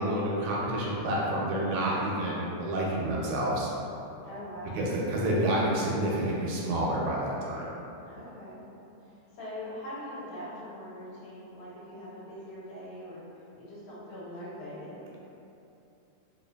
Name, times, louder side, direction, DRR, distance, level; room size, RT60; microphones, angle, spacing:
voice 1, 0.0-3.7 4.7-7.7, right 1 dB, 80° right, -4 dB, 1.8 m, -29 dB
voice 2, 4.2-4.9 8.1-8.7 9.0-13.2 13.6-15.1, left 1 dB, 75° left, -9 dB, 2.3 m, -42 dB
5.0 x 2.3 x 2.2 m, 2.8 s
omnidirectional pair, 3.5 m